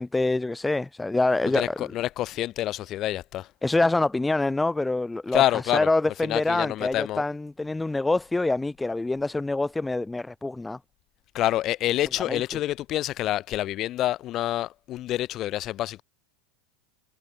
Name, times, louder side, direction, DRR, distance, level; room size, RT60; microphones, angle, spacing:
voice 1, 0.0-1.9 3.6-5.4 5.7-10.8 12.3-12.4, left 2 dB, 5° left, 1.6 m, -25 dB
voice 2, 1.5-3.5 5.3-5.9 6.2-7.2 11.3-16.0, left 14 dB, 30° left, 6.1 m, -27 dB
supercardioid pair, 170°, 0 cm